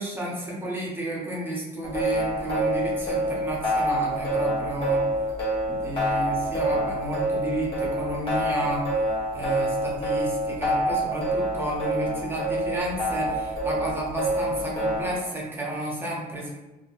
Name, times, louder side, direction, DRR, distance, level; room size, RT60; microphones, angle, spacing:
voice 1, 0.0-5.1 5.7-8.9 9.3-16.6, right 2 dB, 15° right, -4 dB, 0.7 m, -31 dB
sound 1, 1.8-15.2, right 1 dB, 35° left, 1.0 m, -26 dB
2.4 x 2.1 x 2.8 m, 1.1 s
cardioid pair, 110°, 17 cm